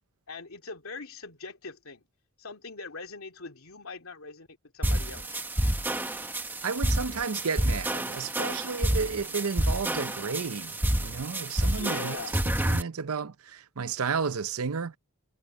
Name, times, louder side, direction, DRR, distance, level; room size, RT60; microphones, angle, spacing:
voice 1, 0.3-2.0 2.4-5.4 11.7-12.4, left 3 dB, 75° left, 2.8 m, -42 dB
sound 1, 4.8-12.8, right 1 dB, 10° right, 1.1 m, -29 dB
voice 2, 6.6-12.2 12.6-15.0, right 5 dB, 80° right, 0.6 m, -32 dB
head